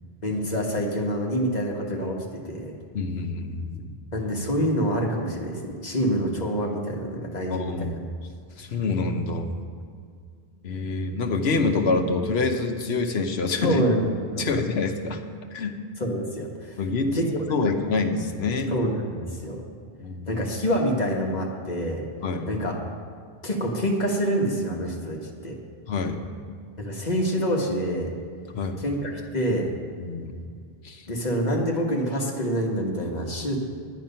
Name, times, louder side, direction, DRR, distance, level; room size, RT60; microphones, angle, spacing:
voice 1, 0.2-2.7 4.1-8.0 13.6-14.5 16.0-16.8 17.1-17.3 17.6-17.7 18.7-19.6 20.3-22.0 22.5-22.9 23.4-25.6 26.8-28.1 28.8-29.7 31.1-33.6, equal, 45° left, -1 dB, 1.5 m, -26 dB
voice 2, 2.9-3.9 7.5-8.0 8.6-9.5 10.6-13.8 14.4-15.2 15.5-15.8 16.8-18.7 20.0-20.3 22.2-22.5 25.9-26.2 28.5-28.8 30.0-30.3 30.8-31.0, left 3 dB, 80° left, 5 dB, 1.1 m, -26 dB
10.5 x 9.1 x 5.6 m, 2.2 s
omnidirectional pair, 1.1 m